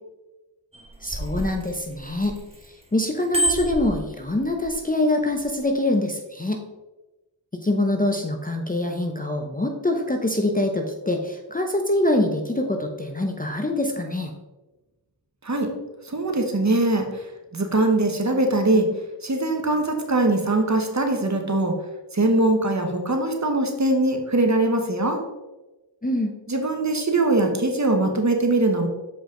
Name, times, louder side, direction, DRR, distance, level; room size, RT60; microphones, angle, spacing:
Bicycle bell, 0.7-2.7 3.1-4.7 5.3-5.6, right 2 dB, 10° right, 1.1 m, -29 dB
voice 1, 1.0-2.3 2.6-6.6 7.6-14.3 26.0-26.3, left 1 dB, 15° left, 3 dB, 0.7 m, -24 dB
voice 2, 16.0-17.2 17.5-18.9 19.2-21.7 22.1-25.2 26.5-28.9, right 2 dB, 35° right, 4 dB, 1.2 m, -22 dB
7.1 x 5.0 x 3.8 m, 1.1 s
wide cardioid pair, 60°, 48 cm